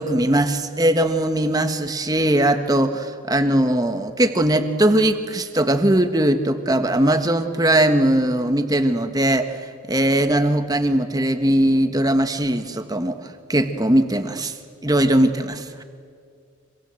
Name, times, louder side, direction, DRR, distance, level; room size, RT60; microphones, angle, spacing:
voice 1, 0.0-9.5 9.9-13.2 13.5-14.5 14.8-15.8, right 1 dB, 20° right, 8 dB, 1.4 m, -20 dB
26.0 x 25.5 x 7.8 m, 2.2 s
head